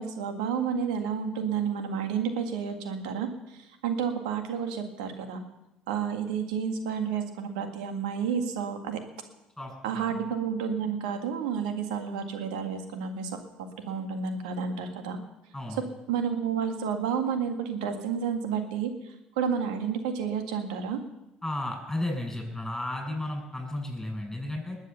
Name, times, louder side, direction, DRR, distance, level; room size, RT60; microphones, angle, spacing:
voice 1, 0.0-5.4 5.9-9.0 9.8-13.4 13.9-15.2 16.1-21.0, right 7 dB, 85° right, 6 dB, 1.8 m, -30 dB
voice 2, 9.6-10.1 15.5-15.8 21.4-24.8, left 1 dB, 10° left, 1 dB, 7.3 m, -33 dB
20.0 x 8.3 x 6.9 m, 0.93 s
hypercardioid pair, 60°, 4 cm